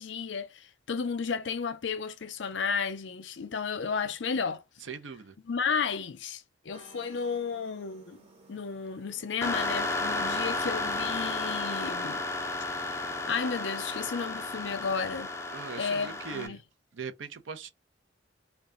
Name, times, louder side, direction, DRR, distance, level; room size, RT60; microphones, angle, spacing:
voice 1, 0.0-4.6 5.4-12.2 13.3-15.3 15.8-16.6, left 5 dB, 65° left, 0.6 m, -33 dB
voice 2, 4.9-5.3 15.5-16.6 16.9-17.7, right 6 dB, 80° right, 0.6 m, -40 dB
sound 1, 6.7-14.1, right 1 dB, 30° right, 0.9 m, -56 dB
sound 2, 9.4-16.5, left 2 dB, 15° left, 0.5 m, -33 dB
3.3 x 2.3 x 3.7 m
head